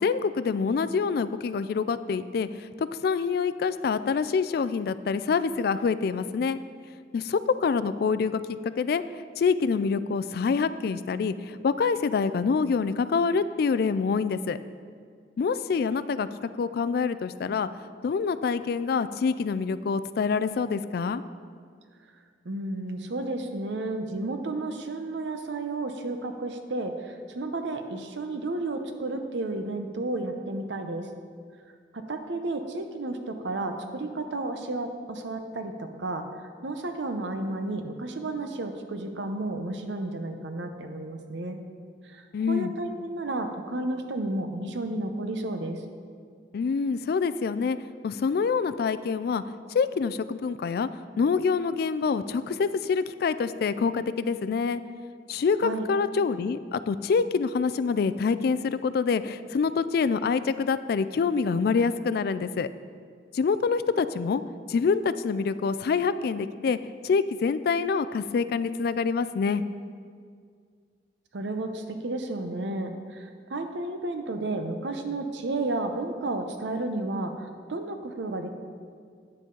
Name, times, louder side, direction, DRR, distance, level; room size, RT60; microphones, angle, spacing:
voice 1, 0.0-6.6 7.1-9.0 9.4-14.6 15.4-16.3 16.6-17.7 18.0-21.2 42.3-42.7 46.5-47.8 48.0-49.4 49.7-50.9 51.2-54.8 55.3-62.7 63.3-64.4 64.7-69.6, left 5 dB, 55° left, 14 dB, 0.3 m, -26 dB
voice 2, 22.4-31.1 31.9-36.2 36.6-41.6 42.0-45.8 55.6-55.9 71.3-78.5, right 2 dB, 80° right, 6 dB, 0.7 m, -32 dB
9.6 x 7.5 x 3.8 m, 2.1 s
head